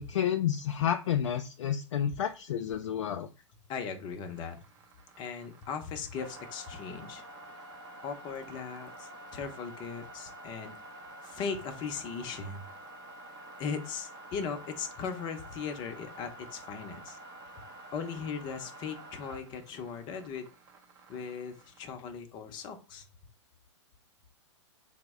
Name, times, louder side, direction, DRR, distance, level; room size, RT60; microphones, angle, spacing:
voice 1, 0.0-3.3, left 9 dB, 75° left, 5 dB, 0.4 m, -30 dB
voice 2, 3.7-4.6 5.2-7.2 8.0-10.8 11.2-12.7 13.6-17.2 17.9-20.5 21.1-23.1, left 6 dB, 30° left, 6 dB, 0.6 m, -38 dB
sound 1, 4.3-21.8, right 1 dB, 25° right, 0.6 m, -49 dB
4.0 x 2.1 x 3.5 m, 0.32 s
hypercardioid pair, 130°, 16 cm